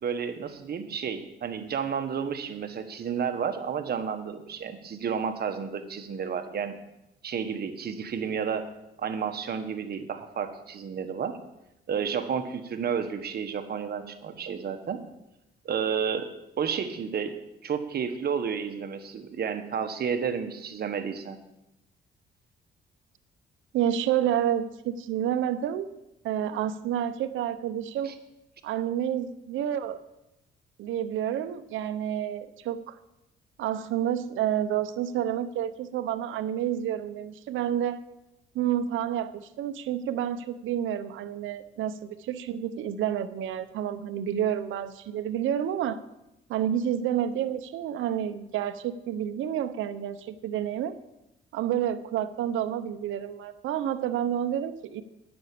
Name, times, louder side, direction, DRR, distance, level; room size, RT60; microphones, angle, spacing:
voice 1, 0.0-6.7 7.2-8.7 9.0-11.4 11.9-15.0 15.6-16.3 16.6-17.3 17.6-21.4 28.0-28.1, right 7 dB, 55° right, 7 dB, 1.3 m, -31 dB
voice 2, 23.7-25.9 26.2-28.1 28.6-30.0 30.8-33.0 33.6-38.0 38.5-46.0 46.5-51.0 51.5-55.0, right 10 dB, 80° right, 11 dB, 0.8 m, -29 dB
9.9 x 7.1 x 8.4 m, 0.90 s
cardioid pair, 90°, 20 cm